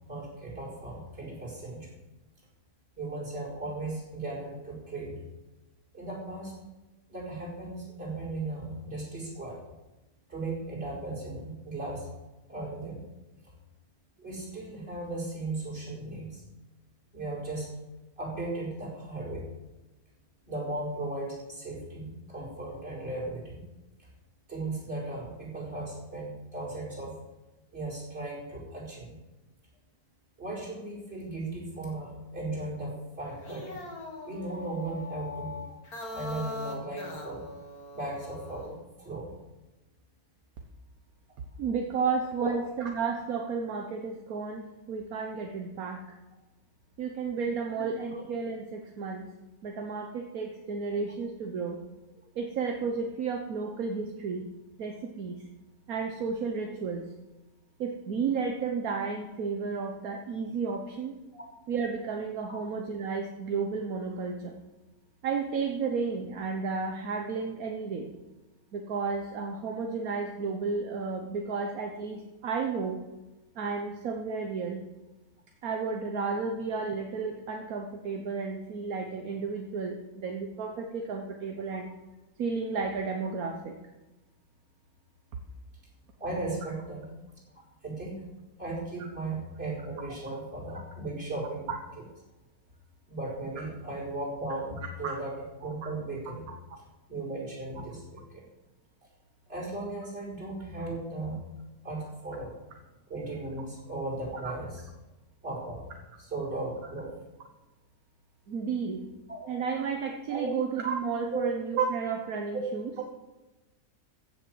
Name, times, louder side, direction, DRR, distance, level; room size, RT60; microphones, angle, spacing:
voice 1, 0.1-1.9 3.0-5.2 5.9-6.5 7.1-9.6 10.3-12.1 12.5-13.0 14.2-16.4 17.1-17.7 18.2-19.4 20.5-23.6 24.5-27.1 27.7-29.1 30.4-33.8 34.3-35.6 36.1-37.4 37.9-39.3 42.4-42.5 47.7-47.9 61.3-61.4 62.5-62.6 86.2-87.0 87.5-88.2 88.6-91.7 93.1-95.3 95.6-96.5 97.1-98.4 99.5-101.4 101.8-102.5 103.1-104.8 105.4-105.8 106.2-107.1 109.3-109.5 110.3-110.5 111.3-111.4 112.5-112.6, right 2 dB, 40° right, -4 dB, 5.2 m, -36 dB
sound 1, 33.3-38.8, left 2 dB, 75° left, 2.6 m, -41 dB
voice 2, 41.6-46.2 47.0-49.3 49.6-51.8 52.3-54.5 54.8-55.4 55.9-57.0 57.8-61.2 61.7-64.6 65.2-68.1 68.7-73.0 73.5-74.8 75.6-81.9 82.4-83.7 91.7-91.8 95.0-95.1 96.5-96.6 104.4-104.5 108.5-109.0 109.5-112.9, right 5 dB, 70° right, 4 dB, 1.5 m, -32 dB
15.0 x 7.2 x 7.7 m, 1.1 s
omnidirectional pair, 1.6 m